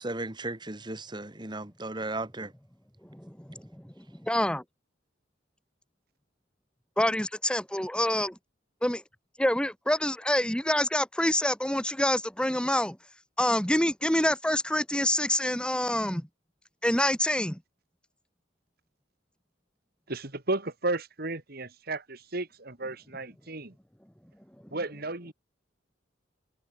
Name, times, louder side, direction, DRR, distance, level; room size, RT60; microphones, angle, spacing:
voice 1, 0.0-2.5, right 2 dB, 25° right, 1.7 m, -35 dB
voice 2, 3.1-3.6 4.2-4.6 7.0-8.3 8.8-9.0 9.4-13.0 13.4-16.3 16.8-17.6, left 1 dB, 5° left, 1.7 m, -26 dB
voice 3, 20.1-23.7 24.7-25.3, right 2 dB, 50° right, 2.6 m, -33 dB
head